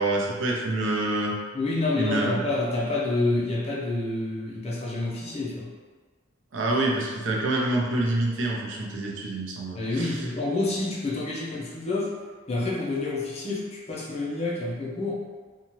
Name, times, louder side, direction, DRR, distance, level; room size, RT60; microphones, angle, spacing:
voice 1, 0.0-1.4 2.0-2.4 6.5-10.1, right 2 dB, 65° right, -2 dB, 0.5 m, -26 dB
voice 2, 1.5-5.7 9.7-12.2 12.5-15.2, left 2 dB, 30° left, -5 dB, 0.6 m, -28 dB
2.8 x 2.3 x 2.9 m, 1.4 s
head